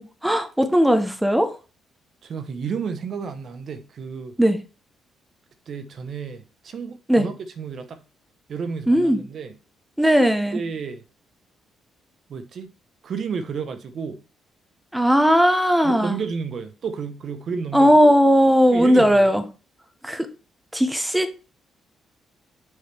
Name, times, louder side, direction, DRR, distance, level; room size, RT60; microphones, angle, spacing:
voice 1, 0.0-1.5 4.4-4.6 7.1-7.3 8.9-9.2 10.0-10.6 14.9-16.2 17.7-19.4 20.0-20.3 20.7-21.4, equal, 5° right, 0.9 m, -17 dB
voice 2, 2.2-4.3 5.7-8.0 8.5-9.5 10.5-11.0 12.3-12.7 13.0-14.2 15.8-18.1 18.7-19.3, right 5 dB, 55° right, 0.9 m, -31 dB
6.7 x 5.0 x 3.4 m
cardioid pair, 90°, 0 cm